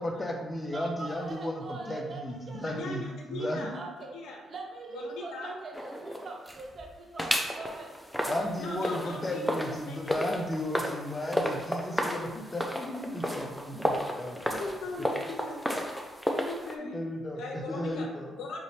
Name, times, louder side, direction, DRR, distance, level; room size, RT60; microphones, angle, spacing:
voice 1, 0.0-3.8 8.2-14.6 15.0-15.1 16.8-18.3, left 1 dB, 20° left, 1 dB, 0.8 m, -34 dB
voice 2, 0.6-2.6 3.7-4.1 4.4-7.9, right 3 dB, 45° right, 0 dB, 0.9 m, -42 dB
voice 3, 2.6-3.7 4.1-4.4 4.9-5.5 8.6-9.5 9.9-10.2 14.6-16.1 16.4-17.0 17.4-18.1 18.4-18.6, left 2 dB, 85° left, -1 dB, 0.7 m, -39 dB
sound 1, 5.7-6.8 7.2-16.8, equal, ahead, 0.6 m, -33 dB
5.5 x 2.6 x 3.2 m, 1.3 s
cardioid pair, 90°, 0 cm